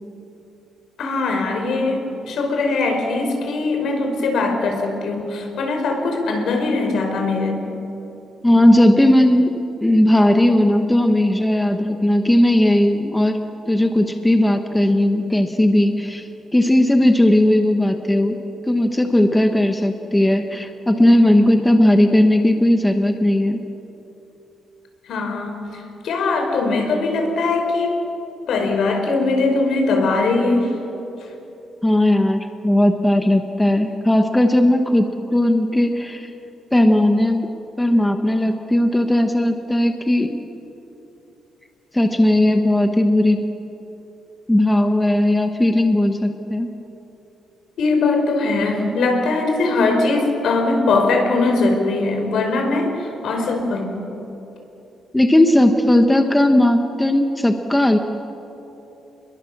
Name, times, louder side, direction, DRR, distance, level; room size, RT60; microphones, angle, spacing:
voice 1, 1.0-7.7 25.1-28.0 28.5-30.7 47.8-54.0, left 3 dB, 70° left, 4 dB, 4.8 m, -21 dB
voice 2, 8.4-18.4 18.6-23.6 31.8-36.3 36.7-37.5 37.8-40.3 41.9-43.4 44.5-46.7 55.1-58.0, left 1 dB, 5° left, 6 dB, 1.0 m, -17 dB
28.5 x 21.5 x 7.2 m, 3.0 s
cardioid pair, 155°, 0 cm